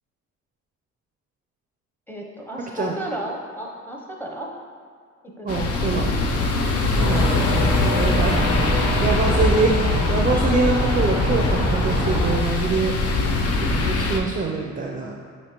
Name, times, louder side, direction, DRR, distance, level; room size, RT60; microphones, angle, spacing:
voice 1, 2.1-4.5 5.4-6.1 6.6-6.8, right 1 dB, 5° left, -1 dB, 0.7 m, -34 dB
voice 2, 5.4-6.1 7.0-8.4 9.0-9.8 10.1-12.9 13.7-15.1, right 3 dB, 30° right, 0 dB, 0.4 m, -24 dB
sound 1, 5.5-14.2, left 2 dB, 50° left, 0.5 m, -23 dB
sound 2, 7.0-12.3, left 1 dB, 70° left, 1.4 m, -23 dB
6.3 x 2.9 x 2.9 m, 2.1 s
cardioid pair, 90°, 30 cm